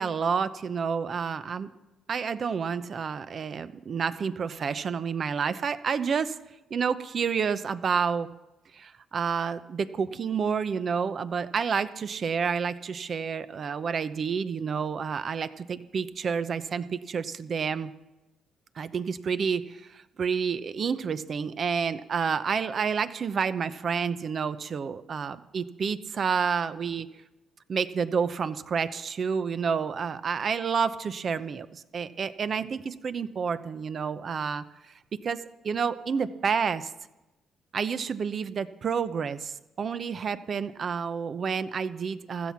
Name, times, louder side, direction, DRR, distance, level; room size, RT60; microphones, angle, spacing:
voice 1, 0.0-1.7 2.1-6.4 6.7-8.3 8.7-17.9 18.8-27.1 27.7-34.9 35.2-36.9 37.7-42.5, right 6 dB, 50° right, 13 dB, 0.8 m, -29 dB
15.5 x 13.0 x 5.9 m, 1.0 s
cardioid pair, 90°, 0 cm